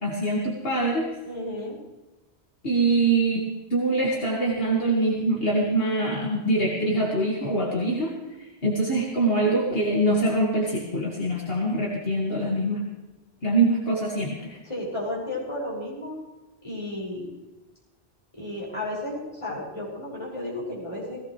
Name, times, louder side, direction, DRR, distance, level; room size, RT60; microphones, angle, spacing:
voice 1, 0.0-1.1 2.6-8.1 8.6-12.8 13.4-14.6, right 2 dB, 65° left, -3 dB, 2.3 m, -24 dB
voice 2, 1.2-1.8 14.6-16.2 16.6-17.3 18.3-21.2, left 1 dB, 30° left, -6 dB, 5.9 m, -33 dB
18.0 x 17.0 x 3.3 m, 1.1 s
omnidirectional pair, 1.1 m